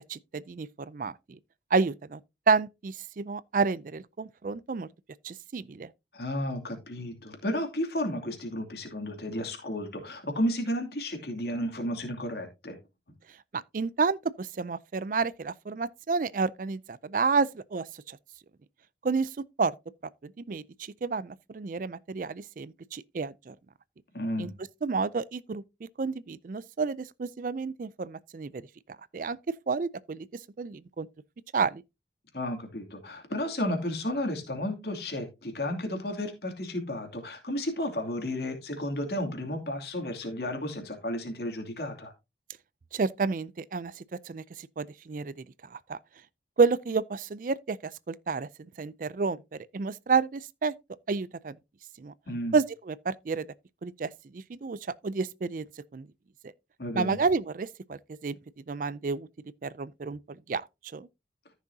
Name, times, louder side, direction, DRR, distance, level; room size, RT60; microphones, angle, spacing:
voice 1, 0.1-1.4 1.7-2.2 2.5-4.9 5.2-5.9 13.5-18.2 19.0-19.7 20.2-23.6 24.4-24.5 24.8-25.6 26.0-28.7 29.1-30.3 30.6-31.1 31.5-31.8 42.9-45.4 45.7-46.0 46.6-48.5 48.8-50.7 51.1-51.5 52.0-52.1 52.5-53.5 53.8-55.7 55.9-56.1 56.9-58.4 58.7-59.3 59.6-60.7 60.9-61.1, right 4 dB, 50° right, 0.4 m, -30 dB
voice 2, 6.1-12.8 24.1-24.5 32.3-42.1 52.3-52.6 56.8-57.2, left 1 dB, 65° left, 2.7 m, -33 dB
14.0 x 6.1 x 2.7 m
head